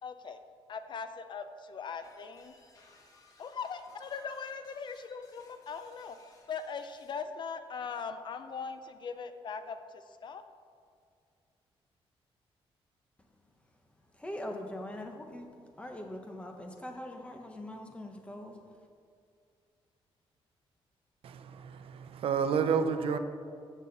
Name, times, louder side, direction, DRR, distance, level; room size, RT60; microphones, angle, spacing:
voice 1, 0.0-0.4 0.7-2.5 3.4-6.2 6.5-10.4, left 5 dB, 50° left, 10 dB, 0.6 m, -40 dB
sound 1, 2.0-7.2, left 2 dB, 35° left, 1.5 m, -62 dB
voice 2, 13.2-18.9, left 1 dB, 10° left, 3 dB, 1.1 m, -43 dB
voice 3, 21.2-23.2, right 6 dB, 70° right, 9 dB, 0.7 m, -30 dB
13.5 x 7.3 x 4.2 m, 2.3 s
cardioid pair, 140°, 10 cm